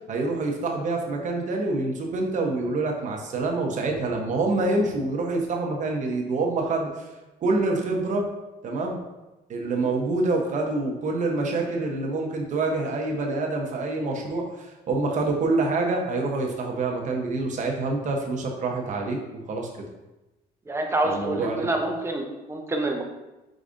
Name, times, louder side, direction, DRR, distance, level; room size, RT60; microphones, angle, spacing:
voice 1, 0.1-7.1 7.4-8.3 8.6-9.0 9.5-19.2 19.5-19.7 21.0-21.7, right 3 dB, 45° right, 1 dB, 0.9 m, -26 dB
voice 2, 20.7-23.0, right 2 dB, 15° right, 2 dB, 0.7 m, -27 dB
5.0 x 4.0 x 2.6 m, 1.0 s
cardioid pair, 110°, 17 cm